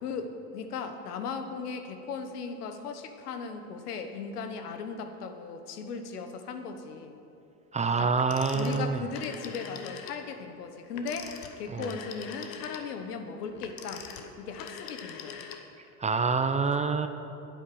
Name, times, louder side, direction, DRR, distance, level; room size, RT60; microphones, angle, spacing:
voice 1, 0.0-7.2 8.0-8.1 8.5-14.1 14.4-15.5, left 5 dB, 90° left, 7 dB, 1.2 m, -37 dB
voice 2, 7.7-9.0 11.7-11.9 16.0-17.1, right 4 dB, 15° right, 9 dB, 0.5 m, -26 dB
Telephone, 8.2-10.2 10.9-15.9, left 7 dB, 50° left, 1.3 m, -43 dB
10.0 x 8.5 x 7.6 m, 2.8 s
hypercardioid pair, 95°, 45 cm